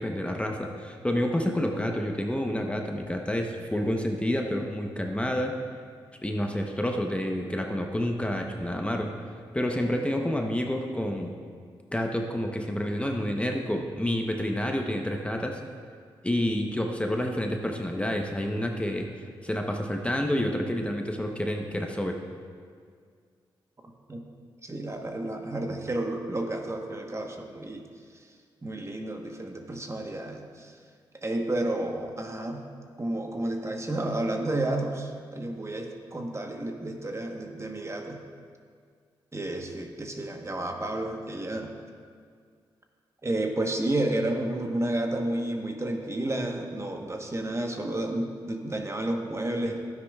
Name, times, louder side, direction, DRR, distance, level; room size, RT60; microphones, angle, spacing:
voice 1, 0.0-5.6 6.2-9.1 9.5-11.3 11.9-15.6 16.2-19.1 19.4-22.2, left 1 dB, 10° left, 2 dB, 0.9 m, -29 dB
voice 2, 24.6-27.8 28.1-28.3 28.6-30.7 31.2-32.6 33.0-38.2 39.3-41.7 43.2-49.8, right 1 dB, 30° right, 3 dB, 1.1 m, -31 dB
12.0 x 9.6 x 2.4 m, 2.1 s
supercardioid pair, 50°, 10 cm